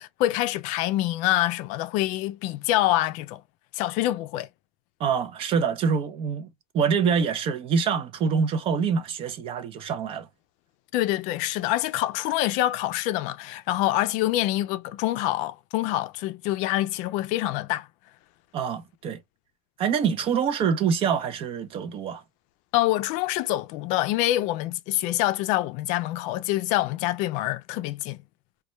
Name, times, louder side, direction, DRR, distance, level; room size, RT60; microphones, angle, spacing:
voice 1, 0.0-3.4 3.7-4.5 10.9-17.9 22.7-28.2, left 15 dB, 60° left, 0.4 m, -26 dB
voice 2, 5.0-6.5 6.7-10.3 18.5-19.2 19.8-22.2, right 6 dB, 40° right, 0.5 m, -25 dB
2.2 x 2.1 x 2.8 m
supercardioid pair, 130°, 15 cm